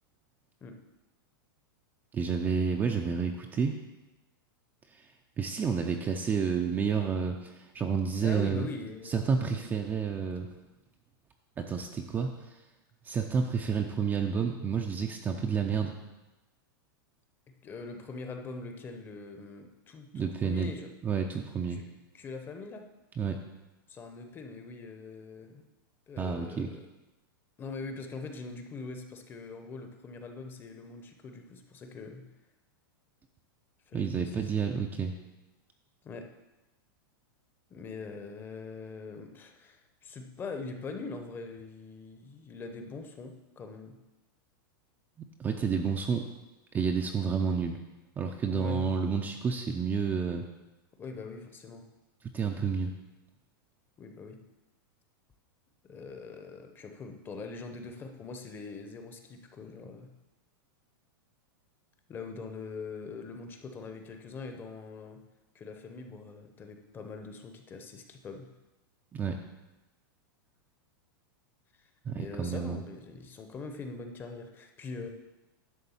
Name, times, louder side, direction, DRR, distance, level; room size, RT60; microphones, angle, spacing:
voice 1, 2.1-3.7 4.9-5.1 5.4-8.6 9.0-10.5 11.6-12.5 13.0-15.9 20.1-20.7 21.0-21.8 23.2-23.4 26.2-26.7 33.9-35.1 45.4-46.2 46.7-47.8 48.2-50.4 52.3-52.9 69.1-69.3 72.1-72.8, right 6 dB, 15° right, 3 dB, 0.5 m, -30 dB
voice 2, 8.2-9.7 17.6-20.1 20.4-20.9 21.7-22.9 23.9-25.6 26.1-26.9 27.6-32.2 33.9-34.5 36.0-36.3 37.7-44.0 48.5-48.8 51.0-51.9 54.0-54.4 55.9-60.1 62.1-65.2 65.5-68.5 72.1-75.1, left 4 dB, 20° left, 5 dB, 0.8 m, -42 dB
11.0 x 3.7 x 7.1 m, 1.0 s
supercardioid pair, 150°, 12 cm